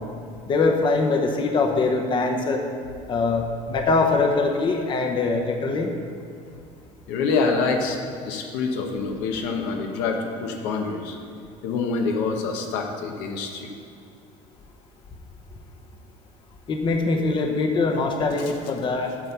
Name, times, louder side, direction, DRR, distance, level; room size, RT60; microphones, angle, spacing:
voice 1, 0.5-2.6 3.1-5.9 16.7-19.1, left 3 dB, 35° left, 3 dB, 0.8 m, -22 dB
voice 2, 7.1-8.0 8.2-11.2 11.6-13.7, left 4 dB, 85° left, 3 dB, 1.0 m, -26 dB
8.9 x 4.5 x 7.0 m, 2.5 s
cardioid pair, 120°, 15 cm